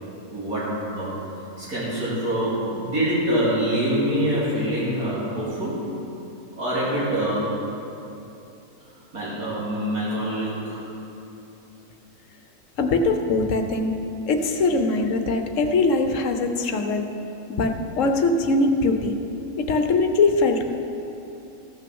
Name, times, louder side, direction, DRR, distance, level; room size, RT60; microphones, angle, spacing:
voice 1, 0.3-0.6 0.9-1.2 1.6-5.9 6.6-7.5 9.1-10.8 14.5-14.6, equal, 75° right, -9 dB, 3.1 m, -25 dB
voice 2, 12.8-13.9 14.3-17.1 17.5-19.1 19.6-20.8, left 3 dB, 60° left, 6 dB, 1.1 m, -22 dB
14.5 x 6.3 x 7.0 m, 2.9 s
omnidirectional pair, 1.6 m